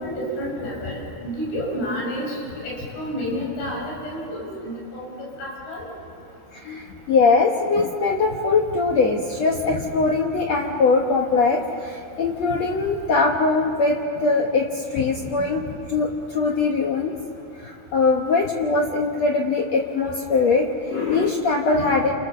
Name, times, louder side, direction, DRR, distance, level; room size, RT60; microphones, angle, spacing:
voice 1, 0.0-2.4 2.6-5.1 5.4-5.8 9.7-9.8, equal, 85° left, -2 dB, 8.3 m, -30 dB
voice 2, 6.5-13.9 14.2-14.6 14.9-17.1 17.6-22.1, left 4 dB, 65° left, 1 dB, 1.7 m, -21 dB
29.5 x 28.5 x 6.9 m, 2.6 s
omnidirectional pair, 4.8 m